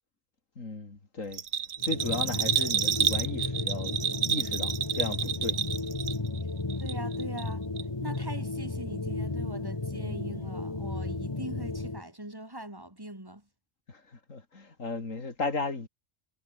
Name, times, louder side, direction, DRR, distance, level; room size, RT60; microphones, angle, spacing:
voice 1, 0.6-1.4 1.8-5.6 13.9-14.0 14.3-15.9, left 3 dB, 80° left, 3.7 m, -35 dB
Bell, 1.3-6.4 6.7-7.5 7.8-7.9, right 8 dB, 60° right, 1.2 m, -29 dB
sound 1, 1.8-12.0, left 2 dB, 20° left, 1.4 m, -34 dB
voice 2, 6.8-7.6 8.0-13.4, right 1 dB, 15° right, 4.0 m, -41 dB
omnidirectional pair, 1.3 m